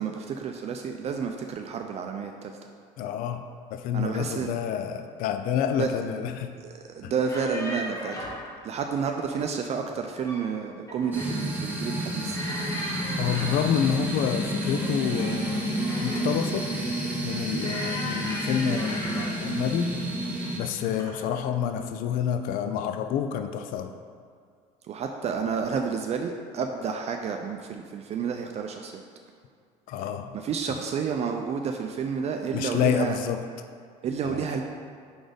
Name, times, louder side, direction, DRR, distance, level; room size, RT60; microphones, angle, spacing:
voice 1, 0.0-2.5 3.9-4.5 5.8-5.9 6.6-8.1 8.6-12.4 24.9-29.0 30.3-33.2 34.0-34.6, right 6 dB, 45° right, 4 dB, 0.5 m, -30 dB
voice 2, 3.0-3.4 3.7-6.5 7.0-7.1 13.2-15.7 16.0-16.7 17.2-20.1 20.5-23.9 29.9-30.3 32.5-33.4 34.2-34.4, left 8 dB, 65° left, 8 dB, 0.4 m, -28 dB
sound 1, 7.3-8.5 9.9-10.5 10.9-11.4 12.3-13.7 14.7-16.4 17.6-19.5 20.3-20.6 21.0-21.2, left 1 dB, 20° left, 1.3 m, -37 dB
sound 2, 11.1-20.6, right 1 dB, 10° right, 1.3 m, -30 dB
5.1 x 4.0 x 5.1 m, 2.2 s
supercardioid pair, 90°, 15 cm